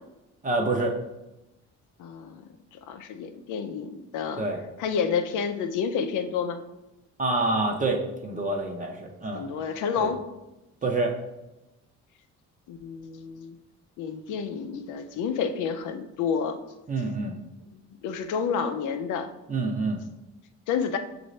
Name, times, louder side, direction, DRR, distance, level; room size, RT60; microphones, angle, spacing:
voice 1, 0.4-0.9 4.4-4.6 7.2-9.5 10.0-10.1 10.8-11.2 16.9-17.4 19.5-20.0, right 2 dB, 25° right, 1 dB, 0.6 m, -27 dB
voice 2, 2.0-2.4 2.7-4.4 4.8-6.6 9.3-10.2 12.7-13.6 14.0-16.6 17.7-19.3 20.7-21.0, left 6 dB, 80° left, 8 dB, 0.5 m, -29 dB
6.2 x 2.6 x 3.1 m, 0.98 s
cardioid pair, 90°, 30 cm